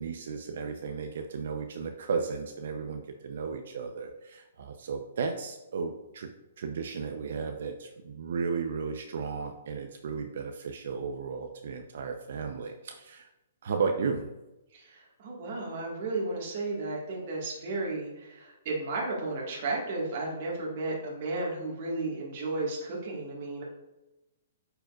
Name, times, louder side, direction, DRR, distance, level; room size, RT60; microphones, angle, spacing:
voice 1, 0.0-6.3 6.6-13.3 13.6-14.3, right 5 dB, 65° right, 5 dB, 0.6 m, -34 dB
voice 2, 14.7-23.6, right 2 dB, 40° right, -3 dB, 1.7 m, -33 dB
8.9 x 5.1 x 2.4 m, 0.98 s
hypercardioid pair, 165°, 0 cm